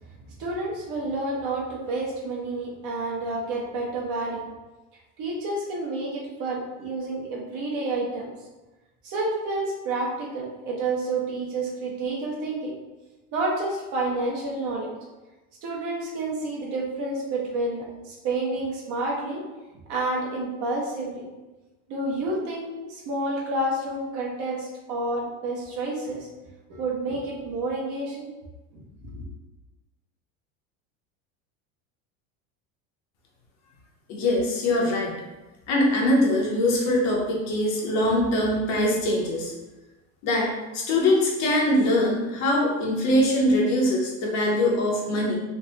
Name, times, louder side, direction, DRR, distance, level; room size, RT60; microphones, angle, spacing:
voice 1, 0.2-4.4 5.2-8.3 9.0-12.8 13.3-14.9 15.6-19.4 19.9-21.3 21.9-26.3 26.7-28.3 28.7-29.2, right 2 dB, 50° right, -3 dB, 0.9 m, -29 dB
voice 2, 34.1-35.1 35.7-39.5 40.2-45.4, left 1 dB, 50° left, -1 dB, 0.7 m, -22 dB
3.4 x 2.1 x 2.8 m, 1.1 s
cardioid pair, 150°, 37 cm